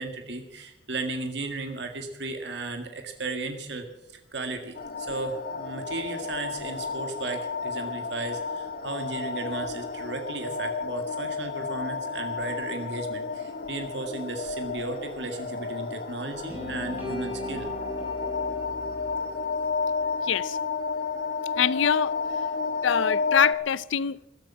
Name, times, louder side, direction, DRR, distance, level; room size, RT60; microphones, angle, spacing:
voice 1, 0.0-3.9 4.3-17.7, right 3 dB, 65° right, 1.8 m, -35 dB
sound 1, 4.7-23.5, left 4 dB, 50° left, 1.6 m, -32 dB
sound 2, 16.5-20.6, left 1 dB, 10° right, 4.2 m, -38 dB
voice 2, 20.2-20.6 21.6-22.2 22.8-24.3, left 7 dB, 85° left, 0.5 m, -24 dB
14.0 x 13.0 x 7.3 m
head